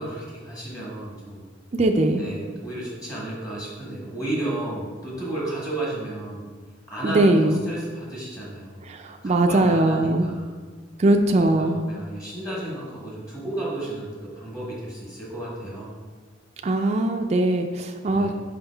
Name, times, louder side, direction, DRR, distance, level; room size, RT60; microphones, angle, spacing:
voice 1, 0.0-1.4 2.2-6.5 6.9-8.9 9.2-10.5 11.6-15.9 18.1-18.3, right 1 dB, 20° left, -5 dB, 1.5 m, -33 dB
voice 2, 1.7-2.2 7.0-7.6 8.8-10.3 11.0-11.8 16.6-18.3, right 2 dB, 35° right, 4 dB, 0.4 m, -20 dB
5.4 x 5.2 x 3.4 m, 1.4 s
head